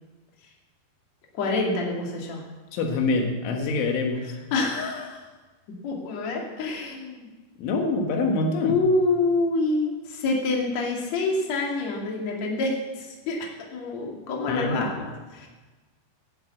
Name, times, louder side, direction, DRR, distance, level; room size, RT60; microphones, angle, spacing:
voice 1, 1.3-2.4 4.5-5.2 5.8-7.3 8.6-13.4 13.7-15.0 15.3-15.5, left 3 dB, 45° left, -1 dB, 3.1 m, -26 dB
voice 2, 2.7-4.3 7.6-8.8 14.5-15.1, left 3 dB, 85° left, 3 dB, 4.1 m, -25 dB
11.5 x 11.5 x 8.4 m, 1.2 s
omnidirectional pair, 5.4 m